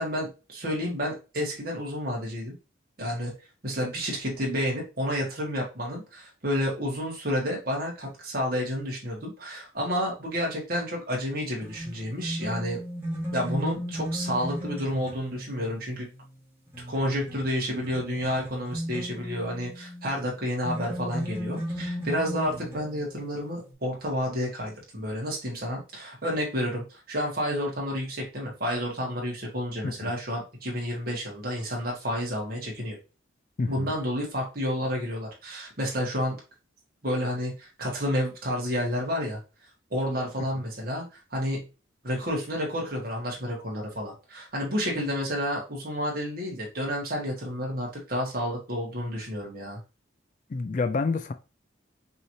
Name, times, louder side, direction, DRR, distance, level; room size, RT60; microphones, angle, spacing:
voice 1, 0.0-2.5 3.0-3.3 3.6-12.8 13.3-16.1 16.9-33.0 33.7-36.4 37.0-39.4 39.9-41.1 41.3-41.7 42.0-49.8, equal, 45° right, 1.8 m, -30 dB
sound 1, 11.6-20.2 20.6-23.7, equal, 10° right, 1.6 m, -36 dB
voice 2, 33.6-33.9 50.5-51.3, left 3 dB, 40° left, 0.3 m, -28 dB
5.6 x 3.1 x 2.8 m
head